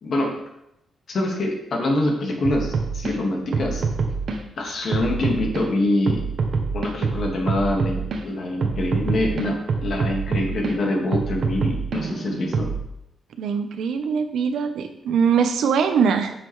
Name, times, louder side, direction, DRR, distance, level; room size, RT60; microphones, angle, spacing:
voice 1, 0.0-0.3 1.1-3.8 4.6-6.2 6.7-12.7, left 1 dB, 55° left, 0 dB, 1.8 m, -25 dB
sound 1, 2.4-3.1 3.5-4.4 4.9-5.6 6.1-8.2 8.6-10.7 11.1-12.8, right 4 dB, 55° right, 0.9 m, -25 dB
voice 2, 13.4-16.3, right 6 dB, 80° right, 8 dB, 0.8 m, -22 dB
8.8 x 6.7 x 3.2 m, 0.82 s
wide cardioid pair, 140°, 0 cm